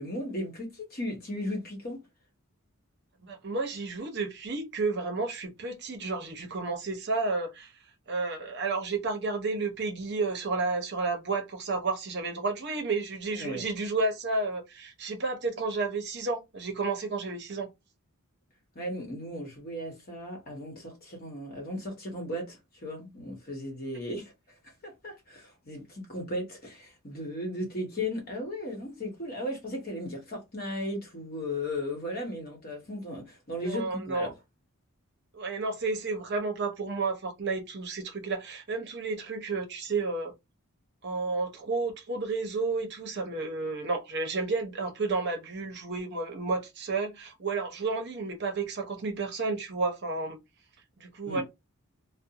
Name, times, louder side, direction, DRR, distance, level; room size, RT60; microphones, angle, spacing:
voice 1, 0.0-2.0 13.3-13.6 18.7-24.3 24.8-34.3 51.3-51.4, left 1 dB, 40° left, 1.0 m, -36 dB
voice 2, 3.2-7.7 8.1-17.7 33.6-34.3 35.3-40.3 41.0-50.4 51.0-51.4, right 3 dB, 50° right, 0.7 m, -31 dB
2.5 x 2.0 x 2.7 m
head